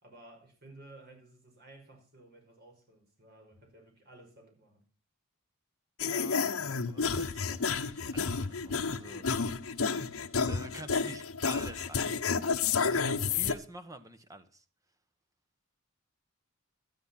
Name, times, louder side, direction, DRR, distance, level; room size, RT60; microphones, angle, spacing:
voice 1, 0.0-4.8, right 2 dB, 50° right, 5.5 m, -55 dB
sound 1, 6.0-13.5, left 5 dB, 70° left, 0.9 m, -31 dB
voice 2, 6.1-6.4 6.9-9.4 9.8-10.2 10.4-12.5 12.8-14.6, right 1 dB, 15° right, 1.2 m, -47 dB
12.5 x 10.5 x 5.8 m
head